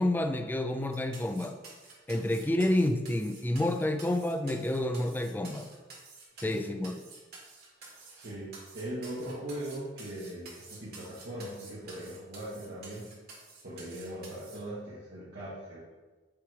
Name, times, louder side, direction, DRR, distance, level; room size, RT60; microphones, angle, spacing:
voice 1, 0.0-1.6 2.1-5.7 6.4-6.9, left 1 dB, 10° left, 7 dB, 0.3 m, -29 dB
sound 1, 0.9-14.6, right 3 dB, 55° right, 2.0 m, -50 dB
voice 2, 7.8-13.1 13.6-15.8, right 1 dB, 75° right, -11 dB, 1.6 m, -40 dB
6.8 x 3.2 x 4.8 m, 1.3 s
head